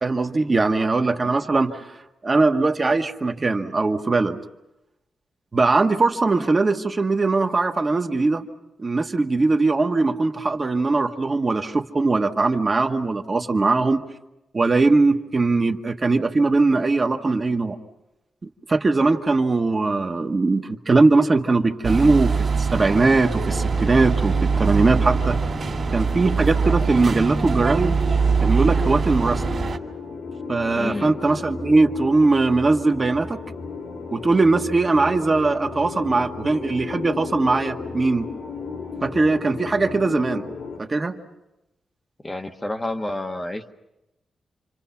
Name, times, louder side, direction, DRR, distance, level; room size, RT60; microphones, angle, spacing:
voice 1, 0.0-1.8 2.2-4.4 5.5-8.5 8.8-14.0 14.5-17.8 18.4-25.4 25.9-28.0 28.4-29.4 30.5-33.4 34.1-38.3 39.0-40.4 40.8-41.2, right 3 dB, 30° right, 4 dB, 1.3 m, -20 dB
sound 1, 21.8-29.8, right 5 dB, 50° right, 2.3 m, -23 dB
sound 2, 23.3-40.8, left 4 dB, 85° left, 3.5 m, -34 dB
voice 2, 30.8-31.1 42.2-43.7, left 1 dB, 15° left, 5 dB, 1.1 m, -29 dB
28.5 x 26.0 x 5.8 m, 0.95 s
wide cardioid pair, 125°, 0 cm